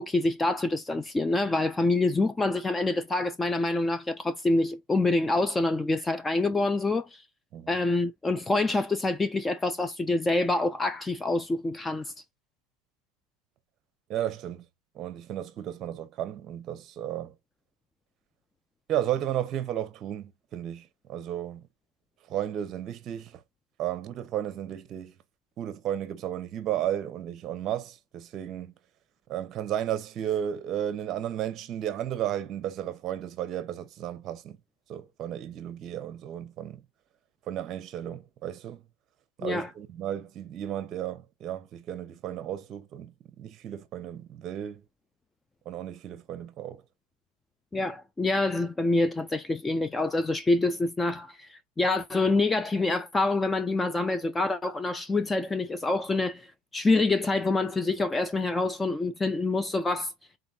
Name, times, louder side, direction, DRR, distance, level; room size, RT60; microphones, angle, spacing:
voice 1, 0.0-7.2 7.7-12.1 39.4-39.7 47.7-60.1, left 2 dB, 10° left, 0.3 m, -26 dB
voice 2, 14.1-14.7 14.9-17.3 18.9-21.6 22.3-23.4 23.8-25.1 25.6-28.7 29.3-34.6 34.9-36.8 37.5-38.8 39.4-44.8 45.6-46.8, right 11 dB, 35° right, 0.9 m, -33 dB
4.0 x 3.9 x 2.8 m
supercardioid pair, 145°, 0 cm